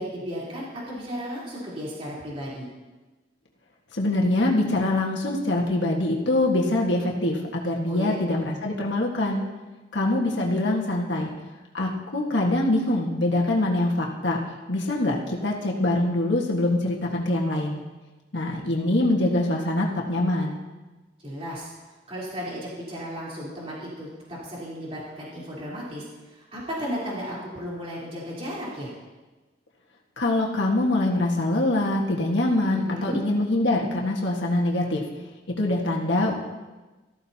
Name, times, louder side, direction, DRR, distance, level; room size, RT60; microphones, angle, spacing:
voice 1, 0.0-2.7 7.9-8.2 21.2-21.7 22.1-28.9 32.6-33.2, equal, 35° right, -7 dB, 3.8 m, -34 dB
voice 2, 3.9-9.4 9.9-11.3 11.7-14.4 14.7-17.8 18.3-20.6 30.2-35.0 35.5-36.3, left 1 dB, 75° left, -2 dB, 1.6 m, -24 dB
19.0 x 14.0 x 2.9 m, 1.2 s
head